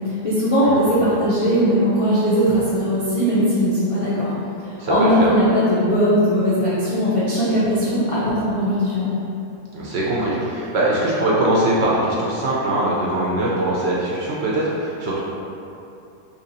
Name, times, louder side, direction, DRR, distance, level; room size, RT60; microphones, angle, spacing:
voice 1, 0.2-4.3 4.9-9.1, equal, 60° left, -10 dB, 0.3 m, -19 dB
voice 2, 4.8-5.3 9.7-15.2, right 1 dB, 60° right, -6 dB, 0.7 m, -21 dB
2.9 x 2.8 x 3.9 m, 2.8 s
omnidirectional pair, 1.5 m